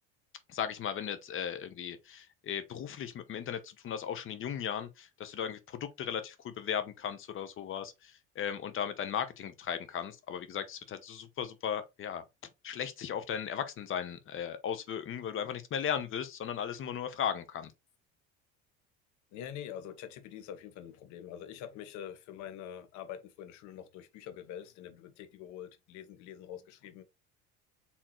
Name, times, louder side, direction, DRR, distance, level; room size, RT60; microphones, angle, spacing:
voice 1, 0.5-12.2 12.6-17.7, left 8 dB, 45° left, 0.8 m, -36 dB
voice 2, 19.3-27.0, left 10 dB, 70° left, 1.0 m, -45 dB
4.4 x 3.6 x 3.0 m
supercardioid pair, 105°, 30 cm